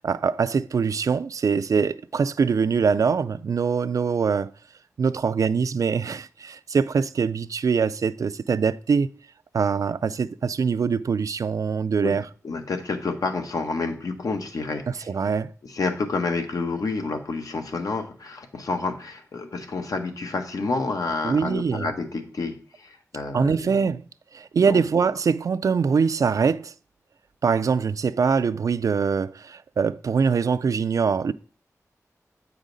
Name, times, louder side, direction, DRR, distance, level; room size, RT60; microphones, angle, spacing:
voice 1, 0.0-4.5 5.0-9.1 9.5-12.3 14.9-15.5 21.2-21.9 23.3-24.0 24.3-26.7 27.4-31.3, right 5 dB, 70° right, 0.3 m, -23 dB
voice 2, 12.4-15.1 15.6-23.9 24.7-24.8, left 3 dB, 80° left, 1.0 m, -29 dB
8.2 x 5.1 x 3.9 m
wide cardioid pair, 105°, 6 cm